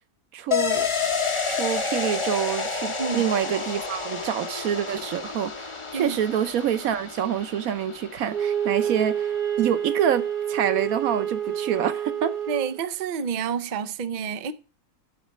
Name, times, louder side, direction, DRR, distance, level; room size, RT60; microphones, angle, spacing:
voice 1, 0.3-0.9 1.5-12.3, right 9 dB, 65° right, 1.2 m, -27 dB
sound 1, 0.5-9.9 10.2-10.3, left 5 dB, 25° left, 0.7 m, -30 dB
Wind instrument woodwind instrument, 8.3-12.8, right 9 dB, 45° right, 0.9 m, -28 dB
voice 2, 12.5-14.5, right 6 dB, 85° right, 0.4 m, -29 dB
11.5 x 4.0 x 7.3 m
omnidirectional pair, 1.7 m